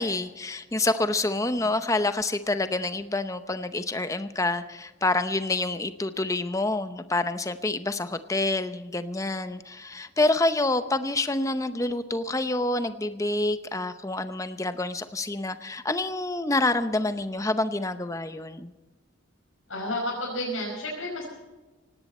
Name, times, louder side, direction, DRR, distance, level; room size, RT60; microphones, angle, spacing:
voice 1, 0.0-18.7, left 2 dB, 15° left, 10 dB, 0.7 m, -27 dB
voice 2, 19.7-21.3, left 1 dB, 90° left, -4 dB, 5.5 m, -31 dB
18.0 x 17.5 x 4.3 m, 1.2 s
head